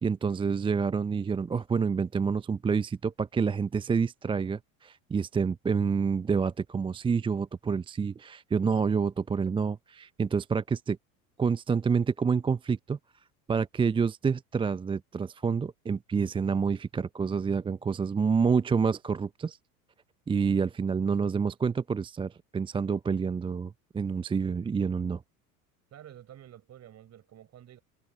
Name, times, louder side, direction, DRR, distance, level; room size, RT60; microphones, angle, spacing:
voice 1, 0.0-11.0 11.4-13.0 13.5-19.6 20.3-25.2, right 5 dB, 10° right, 0.6 m, -28 dB
voice 2, 25.9-27.8, right 11 dB, 35° right, 4.7 m, -50 dB
figure-of-eight pair, 75°, 44 cm